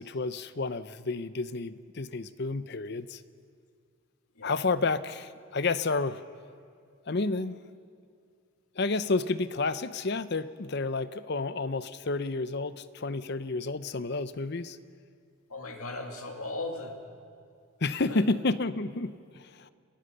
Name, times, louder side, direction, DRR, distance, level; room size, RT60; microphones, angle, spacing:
voice 1, 0.0-3.2 4.4-6.2 7.1-7.6 8.8-14.8 17.8-19.7, left 3 dB, 50° left, 13 dB, 0.7 m, -30 dB
voice 2, 15.5-17.0 17.9-18.2, left 2 dB, 85° left, 2 dB, 2.3 m, -37 dB
30.0 x 13.0 x 6.8 m, 2.3 s
head